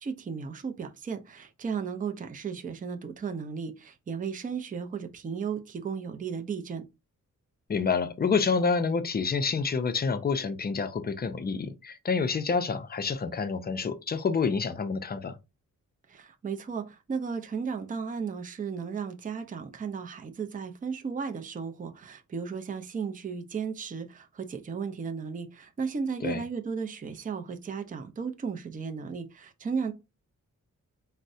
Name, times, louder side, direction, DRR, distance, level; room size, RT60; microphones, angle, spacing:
voice 1, 0.0-6.8 16.1-29.9, right 6 dB, 25° right, 0.4 m, -35 dB
voice 2, 7.7-15.4 26.2-26.4, left 5 dB, 30° left, 0.4 m, -28 dB
4.4 x 2.1 x 2.6 m
wide cardioid pair, 125°, 31 cm